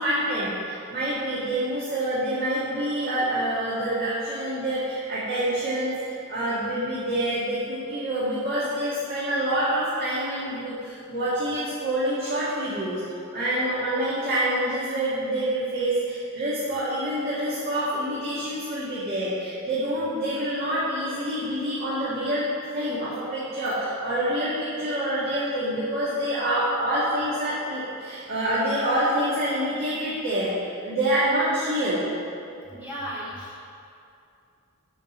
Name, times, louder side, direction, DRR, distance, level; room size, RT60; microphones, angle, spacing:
voice 1, 0.0-6.0 6.3-13.0 13.3-22.5 22.7-30.5 30.8-32.1, right 1 dB, 45° right, -10 dB, 2.0 m, -26 dB
voice 2, 32.7-33.7, equal, 10° right, -8 dB, 1.1 m, -35 dB
7.8 x 6.0 x 7.3 m, 2.6 s
head